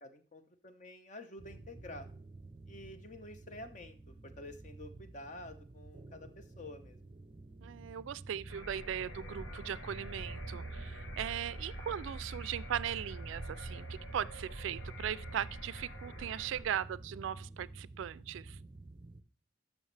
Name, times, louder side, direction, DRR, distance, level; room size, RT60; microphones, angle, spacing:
voice 1, 0.0-2.1 2.7-7.0, left 1 dB, 40° left, 0.8 m, -49 dB
sound 1, 1.4-19.2, right 3 dB, 25° right, 0.5 m, -48 dB
voice 2, 7.6-13.9 14.1-18.6, right 9 dB, 85° right, 0.3 m, -38 dB
sound 2, 8.5-16.6, left 1 dB, 85° left, 1.3 m, -48 dB
12.0 x 6.3 x 3.3 m
head